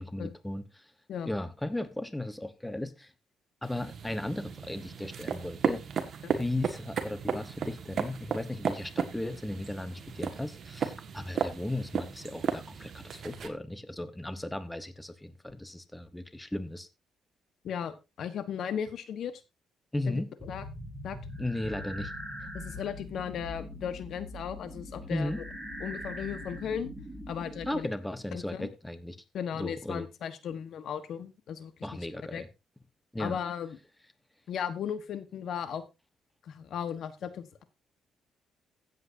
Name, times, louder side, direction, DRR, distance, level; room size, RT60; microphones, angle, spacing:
voice 1, 0.0-0.9 1.2-3.1 3.6-5.8 6.3-16.9 19.9-20.3 21.4-22.1 25.1-25.4 27.7-29.2 29.5-30.1 31.8-32.5 33.1-33.4, left 1 dB, 10° left, 1.1 m, -36 dB
sound 1, 3.6-13.5, right 6 dB, 55° right, 1.6 m, -35 dB
voice 2, 17.6-19.3 20.1-20.6 21.0-21.2 22.5-25.4 25.8-26.9 27.3-27.9 28.3-28.7 29.3-31.7 32.3-32.4 33.2-33.8 34.5-35.8 36.4-37.6, left 8 dB, 65° left, 1.2 m, -36 dB
sound 2, 20.4-27.8, equal, 5° right, 5.7 m, -42 dB
16.0 x 8.0 x 2.7 m
cardioid pair, 90°, 0 cm